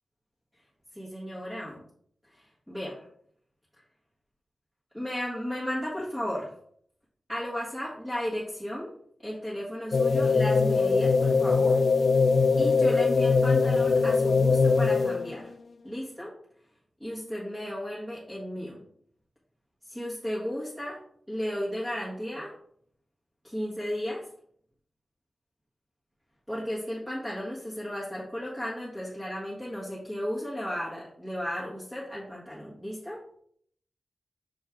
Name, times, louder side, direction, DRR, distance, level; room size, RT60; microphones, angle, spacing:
voice 1, 0.9-1.8 2.3-3.1 4.9-6.5 7.3-8.9 9.2-11.8 12.6-15.5 15.8-16.3 17.0-18.8 19.9-21.0 21.3-22.5 23.4-24.3 26.5-33.2, equal, ahead, -7 dB, 1.5 m, -34 dB
sound 1, 9.9-15.4, left 4 dB, 50° left, 0.3 m, -22 dB
6.2 x 4.6 x 3.6 m, 0.64 s
wide cardioid pair, 155°, 0 cm